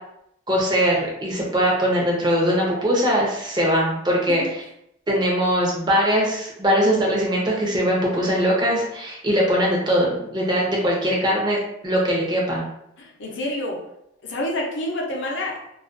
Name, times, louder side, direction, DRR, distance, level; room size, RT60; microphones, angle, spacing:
voice 1, 0.5-4.4 5.1-11.6 11.8-12.6, equal, 20° right, -3 dB, 0.6 m, -21 dB
voice 2, 13.0-13.8 14.2-15.6, left 1 dB, 65° left, 0 dB, 0.5 m, -28 dB
2.3 x 2.2 x 2.4 m, 0.78 s
head